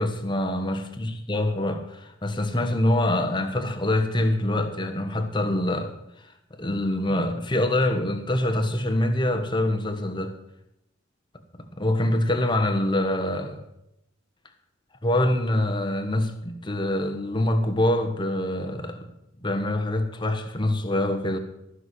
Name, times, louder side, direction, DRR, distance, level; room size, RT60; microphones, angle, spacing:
voice 1, 0.0-6.0 6.2-10.3 11.8-13.6 15.0-19.1 19.4-21.4, left 1 dB, 25° left, 1.3 m, -25 dB
14.0 x 6.4 x 7.9 m
head